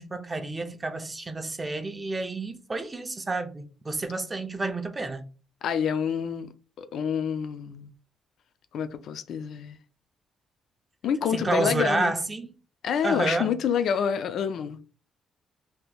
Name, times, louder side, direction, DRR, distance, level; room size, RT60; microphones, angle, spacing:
voice 1, 0.0-5.2 11.3-12.5 13.0-13.6, right 2 dB, 25° right, 0.5 m, -30 dB
voice 2, 5.6-6.5 6.8-7.9 8.7-9.8 11.0-12.1 12.8-14.8, left 7 dB, 70° left, 0.4 m, -27 dB
3.3 x 2.8 x 2.2 m
cardioid pair, 90°, 0 cm